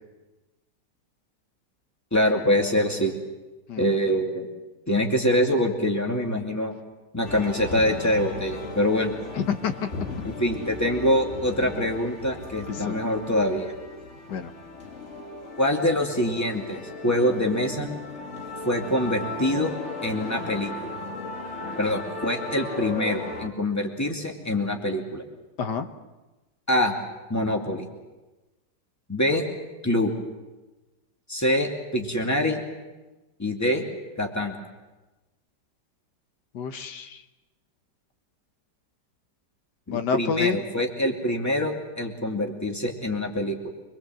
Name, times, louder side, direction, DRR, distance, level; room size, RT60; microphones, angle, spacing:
voice 1, 2.1-3.1 3.8-4.5 4.9-6.7 7.1-9.1 10.4-13.7 15.6-17.9 18.6-19.7 20.0-20.9 21.8-25.2 26.7-26.9 27.3-27.9 29.1-29.4 29.8-30.1 31.3-32.6 33.4-33.8 34.2-34.6 39.9-43.7, left 1 dB, 10° left, 2 dB, 2.4 m, -25 dB
sound 1, 7.2-23.5, left 3 dB, 40° left, 2.0 m, -36 dB
voice 2, 9.4-9.9 12.8-13.0 14.3-14.5 25.6-25.9 36.5-37.2 39.9-40.6, left 6 dB, 75° left, 9 dB, 1.7 m, -28 dB
25.5 x 21.5 x 7.7 m, 1.1 s
omnidirectional pair, 1.9 m